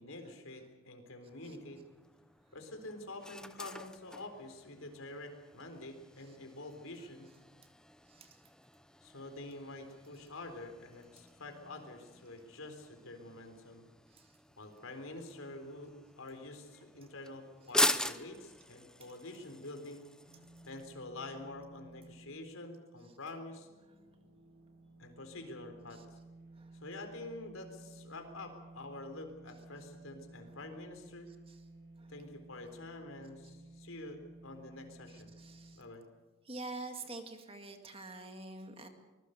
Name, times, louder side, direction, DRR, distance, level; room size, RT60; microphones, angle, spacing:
voice 1, 0.0-1.8 2.5-7.3 9.0-13.9 14.6-20.1 20.6-23.7 25.0-26.0 26.8-31.3 32.1-35.3 35.7-36.0, left 2 dB, 85° left, 6 dB, 4.0 m, -47 dB
sound 1, 1.3-20.9, left 1 dB, 5° left, 0.7 m, -42 dB
voice 2, 8.1-8.4 14.1-14.4 25.9-26.0 26.5-26.8 31.5-31.6 32.0-32.1 35.1-35.8 36.4-38.9, right 2 dB, 25° right, 5 dB, 2.1 m, -47 dB
sound 2, 20.2-35.7, right 2 dB, 70° right, 5.7 m, -56 dB
24.5 x 21.0 x 6.6 m, 1.2 s
head